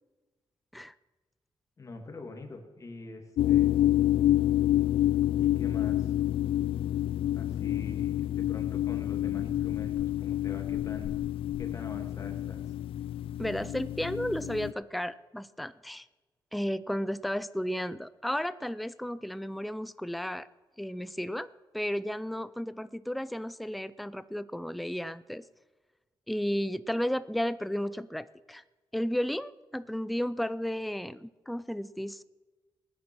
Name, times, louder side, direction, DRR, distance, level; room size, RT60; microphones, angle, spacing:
voice 1, 1.8-3.8 5.4-6.1 7.3-11.2 11.6-12.7, left 3 dB, 35° left, 3 dB, 2.4 m, -44 dB
sound 1, 3.4-14.7, left 13 dB, 85° left, 0.4 m, -28 dB
voice 2, 13.4-16.1 16.5-20.5 20.8-21.5 21.7-25.4 26.3-28.6 28.9-32.2, equal, ahead, 15 dB, 0.4 m, -33 dB
18.5 x 9.5 x 6.2 m, 1.2 s
cardioid pair, 110°, 9 cm